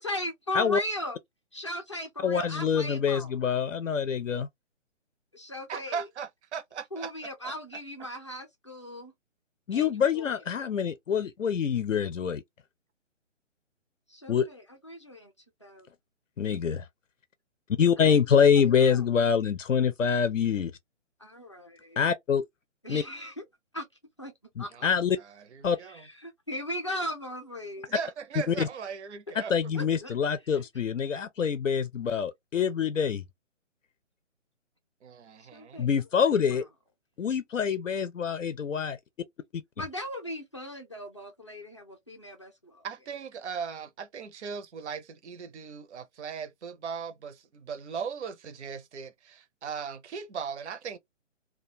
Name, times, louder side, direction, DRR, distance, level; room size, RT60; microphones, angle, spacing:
voice 1, 0.0-1.2 1.5-3.3 5.3-6.1 6.9-9.1 9.7-10.4 14.1-15.3 15.6-15.9 18.0-19.0 21.2-22.0 22.8-23.4 23.7-23.9 24.2-24.3 24.6-24.9 25.9-27.9 29.3-29.4 29.7-30.1 35.5-35.9 36.2-36.6 39.8-42.9, left 1 dB, 25° left, 0.4 m, -38 dB
voice 2, 2.2-4.5 9.7-12.4 14.3-14.5 16.4-16.9 17.8-20.7 22.0-22.4 22.9-23.0 24.6-25.2 25.6-25.8 28.5-28.7 29.4-33.2 35.8-36.6 37.2-39.0, left 7 dB, 80° left, 0.5 m, -25 dB
voice 3, 5.7-7.1 7.4-7.5 24.7-24.8 25.2-26.0 27.9-29.6 35.0-35.8 42.8-51.0, right 6 dB, 65° right, 0.5 m, -38 dB
2.2 x 2.1 x 2.6 m
figure-of-eight pair, 140°, 38 cm